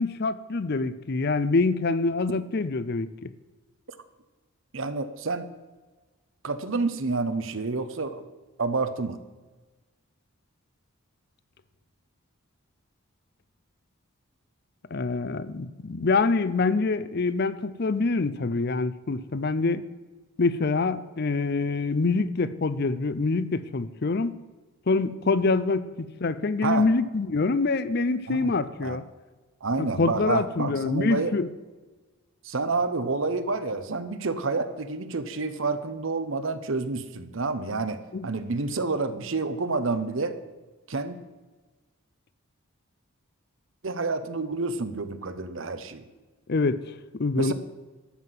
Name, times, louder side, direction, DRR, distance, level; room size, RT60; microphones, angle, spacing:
voice 1, 0.0-3.3 14.9-19.8 20.4-24.4 24.9-29.0 29.8-31.5 38.1-38.3 46.5-46.9 47.2-47.5, left 3 dB, 45° left, 15 dB, 0.5 m, -25 dB
voice 2, 4.7-5.5 6.4-8.2 8.6-9.2 26.6-26.8 28.3-28.5 28.8-29.0 29.6-31.3 32.4-40.4 40.9-41.2 43.8-46.1 47.4-47.5, right 3 dB, 60° right, 10 dB, 0.8 m, -29 dB
13.0 x 5.9 x 7.5 m, 1.3 s
head